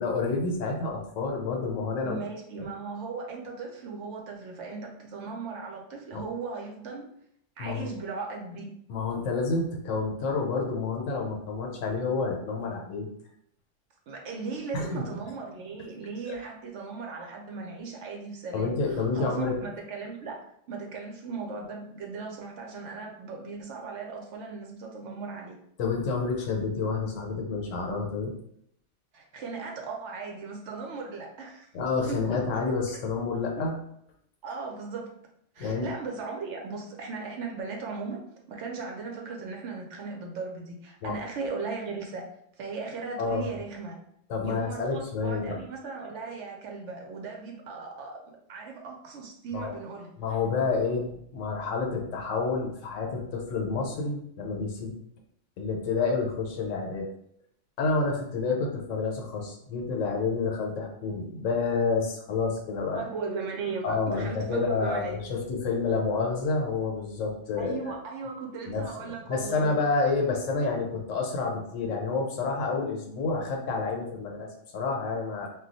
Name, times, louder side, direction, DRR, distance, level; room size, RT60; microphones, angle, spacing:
voice 1, 0.0-2.2 2.6-2.7 6.1-6.2 7.6-7.9 8.9-13.1 14.7-15.0 16.3-16.4 18.5-19.6 25.8-28.3 31.7-33.8 35.6-35.9 41.0-41.1 43.2-43.5 44.3-45.6 49.5-49.8 50.2-55.0 55.6-57.1 57.8-63.1 63.8-67.9 68.7-75.5, left 4 dB, 85° left, 1 dB, 1.0 m, -29 dB
voice 2, 2.0-7.0 7.6-8.7 14.1-20.4 20.7-25.6 29.1-31.7 32.1-32.4 33.6-33.7 34.4-35.1 35.5-38.2 38.5-42.2 42.6-44.0 44.4-50.1 62.9-65.2 67.6-69.8, right 4 dB, 70° right, 0 dB, 0.9 m, -37 dB
2.3 x 2.2 x 3.9 m, 0.72 s
omnidirectional pair, 1.3 m